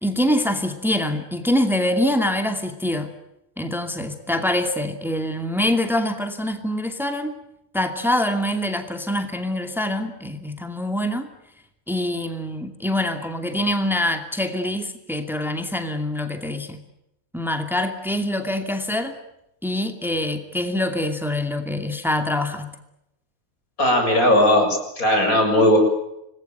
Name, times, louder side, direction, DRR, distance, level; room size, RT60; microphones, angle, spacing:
voice 1, 0.0-3.1 3.6-7.4 7.7-11.3 11.9-16.8 17.3-19.2 19.6-22.7, left 1 dB, ahead, 6 dB, 2.5 m, -24 dB
voice 2, 23.8-25.8, left 1 dB, 85° left, 4 dB, 7.3 m, -17 dB
27.0 x 20.0 x 9.3 m, 0.83 s
omnidirectional pair, 1.5 m